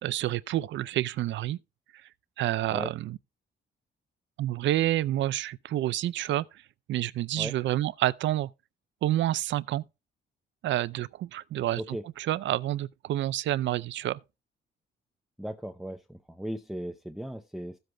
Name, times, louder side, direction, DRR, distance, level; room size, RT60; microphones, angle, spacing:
voice 1, 0.0-1.6 2.4-3.2 4.4-6.5 6.9-8.5 9.0-9.8 10.6-14.2, right 14 dB, 70° right, 0.5 m, -28 dB
voice 2, 15.4-17.8, right 1 dB, ahead, 0.6 m, -37 dB
15.0 x 7.8 x 2.2 m
cardioid pair, 90°, 20 cm